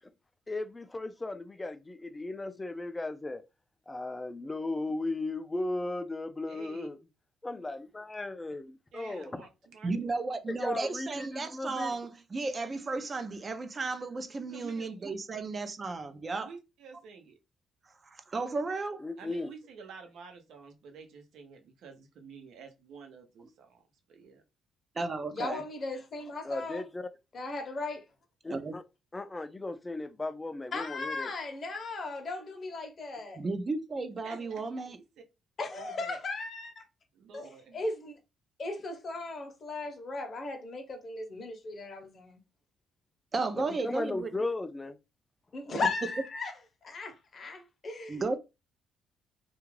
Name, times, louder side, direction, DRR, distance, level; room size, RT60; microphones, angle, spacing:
voice 1, 0.5-3.4 3.9-7.0 7.4-9.5 10.5-12.0 19.0-19.5 26.4-27.1 28.4-28.8 29.1-31.3 43.5-45.0, left 2 dB, 20° left, 0.4 m, -36 dB
voice 2, 6.5-6.9 8.9-9.9 14.5-14.9 16.4-17.4 19.2-23.8 24.1-24.4 34.2-35.0 35.8-36.2 37.1-37.8, right 5 dB, 80° right, 0.7 m, -50 dB
voice 3, 9.8-16.5 18.1-19.1 25.0-25.6 28.5-28.8 33.4-35.0 43.3-44.3 48.1-48.4, right 3 dB, 35° right, 0.5 m, -34 dB
voice 4, 25.3-26.8 27.3-28.0 30.7-33.4 35.6-36.8 37.3-38.2 38.6-42.4 45.5-46.5 46.8-48.2, left 3 dB, 45° left, 0.8 m, -37 dB
2.3 x 2.3 x 3.1 m
cardioid pair, 90°, 0 cm